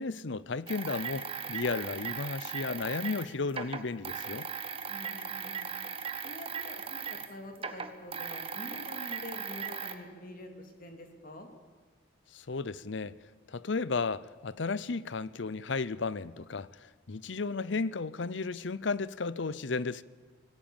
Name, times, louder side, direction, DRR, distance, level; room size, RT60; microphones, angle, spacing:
voice 1, 0.0-4.5 12.3-13.2 13.5-20.0, left 4 dB, 65° left, 0.7 m, -34 dB
sound 1, 0.7-7.3 7.6-10.0, right 6 dB, 30° right, 1.4 m, -38 dB
voice 2, 4.9-5.7 6.2-11.5, left 1 dB, 45° left, 3.1 m, -46 dB
26.0 x 18.5 x 7.2 m
head